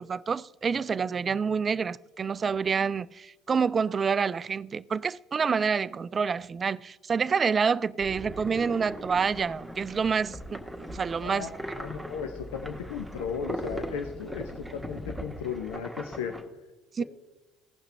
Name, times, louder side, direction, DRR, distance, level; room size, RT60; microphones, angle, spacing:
voice 1, 0.0-11.5 16.9-17.0, right 5 dB, 35° right, 0.3 m, -28 dB
sound 1, 8.0-16.4, equal, ahead, 1.5 m, -40 dB
sound 2, 8.7-15.1, equal, 15° left, 1.4 m, -47 dB
voice 2, 11.2-16.4, left 6 dB, 80° left, 0.7 m, -36 dB
16.5 x 5.7 x 3.4 m
hypercardioid pair, 65°, 0 cm